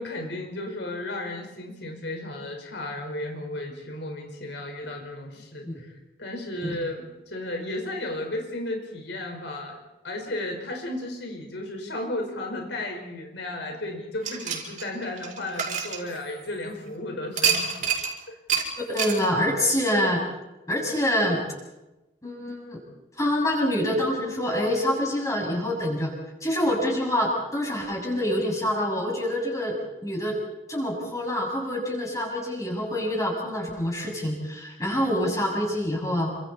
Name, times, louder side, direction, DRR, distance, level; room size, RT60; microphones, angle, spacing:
voice 1, 0.0-5.9 6.2-9.8 10.0-17.9 18.3-18.4, left 1 dB, 75° left, 2 dB, 5.0 m, -34 dB
sound 1, 14.2-16.6 17.4-18.1 18.5-18.7 19.0-19.2, right 7 dB, 45° right, 5.3 m, -27 dB
voice 2, 18.8-20.2 20.7-21.4 22.2-22.8 23.2-26.1 26.4-29.8 30.0-30.4 30.7-36.3, left 1 dB, 15° left, -1 dB, 7.1 m, -26 dB
29.0 x 26.0 x 4.4 m, 1.0 s
head